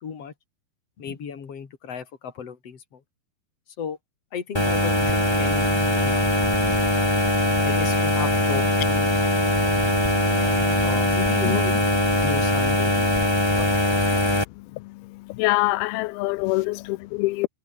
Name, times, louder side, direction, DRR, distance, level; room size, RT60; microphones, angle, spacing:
voice 1, 0.0-0.3 1.0-3.0 3.8-4.0 4.3-6.3 7.7-9.1 10.8-11.7 12.2-13.3 16.5-16.6, left 7 dB, 40° left, 3.6 m, -35 dB
sound 1, 4.5-14.4, left 1 dB, 5° left, 2.7 m, -21 dB
voice 2, 15.3-17.5, left 21 dB, 90° left, 2.2 m, -24 dB
omnidirectional pair, 5.1 m